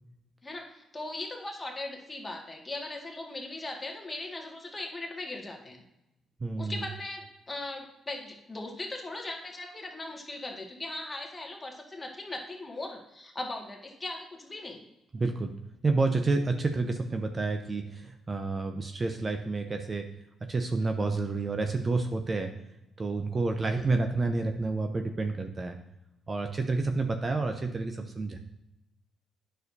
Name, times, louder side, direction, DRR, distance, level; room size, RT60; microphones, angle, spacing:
voice 1, 0.4-5.8 6.6-14.8 23.7-23.9, left 2 dB, 20° left, 0 dB, 1.8 m, -39 dB
voice 2, 6.4-6.8 15.1-15.5 15.8-20.0 20.5-22.5 23.0-25.8 26.3-28.4, right 3 dB, 30° right, 5 dB, 0.7 m, -29 dB
9.4 x 6.4 x 2.7 m, 0.89 s
cardioid pair, 90°, 0 cm